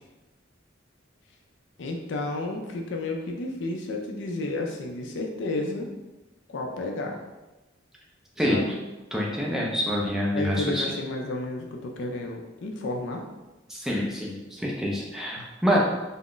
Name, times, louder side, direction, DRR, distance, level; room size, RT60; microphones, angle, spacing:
voice 1, 1.8-5.9 6.5-7.2 8.5-8.7 10.3-13.2 15.4-15.5 15.7-15.8, left 2 dB, 65° left, 2 dB, 0.4 m, -32 dB
voice 2, 9.1-10.9 13.7-15.8, equal, ahead, -3 dB, 0.4 m, -26 dB
2.4 x 2.0 x 3.7 m, 1.1 s
head